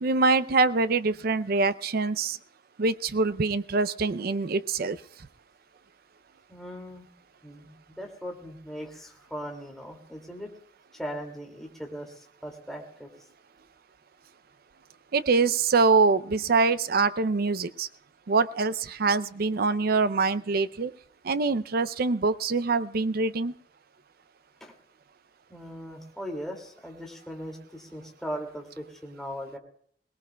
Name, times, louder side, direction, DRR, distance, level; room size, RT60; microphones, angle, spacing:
voice 1, 0.0-2.4 2.8-5.0 15.1-17.9 18.3-20.9 21.2-23.5, right 4 dB, 55° right, 15 dB, 0.5 m, -24 dB
voice 2, 6.5-7.1 7.4-10.5 10.9-13.1 24.6-24.7 25.5-29.6, equal, ahead, 0 dB, 2.4 m, -39 dB
22.5 x 18.5 x 2.3 m, 0.62 s
head